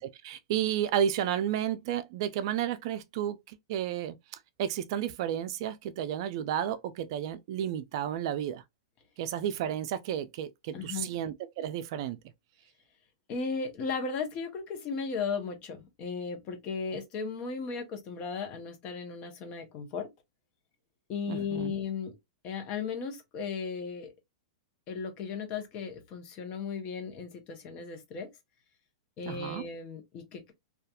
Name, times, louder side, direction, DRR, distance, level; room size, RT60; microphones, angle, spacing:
voice 1, 0.0-4.2 4.6-8.6 9.2-12.2 21.3-21.7 29.3-29.6, right 10 dB, 55° right, 0.4 m, -32 dB
voice 2, 10.7-11.2 13.3-20.1 21.1-22.2 22.4-24.1 24.9-28.3 29.2-30.5, left 5 dB, 35° left, 0.8 m, -36 dB
2.7 x 2.3 x 2.2 m
hypercardioid pair, 130°, 3 cm